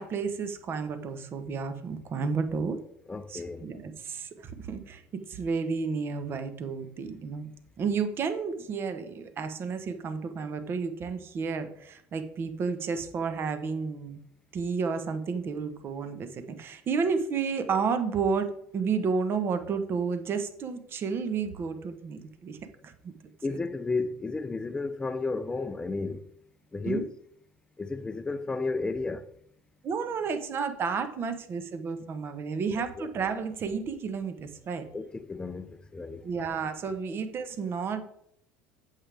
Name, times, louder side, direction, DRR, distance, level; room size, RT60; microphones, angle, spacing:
voice 1, 0.0-2.8 3.3-7.5 7.8-14.2 14.5-22.6 22.8-23.1 23.5-23.6 26.8-27.0 29.8-34.9 36.2-38.1, right 5 dB, 40° right, 1.1 m, -31 dB
voice 2, 3.1-3.7 23.4-26.3 26.7-27.1 27.8-29.3 33.0-33.1 34.9-36.2, left 3 dB, 15° left, 0.6 m, -33 dB
8.6 x 7.6 x 3.4 m
supercardioid pair, 105°, 6 cm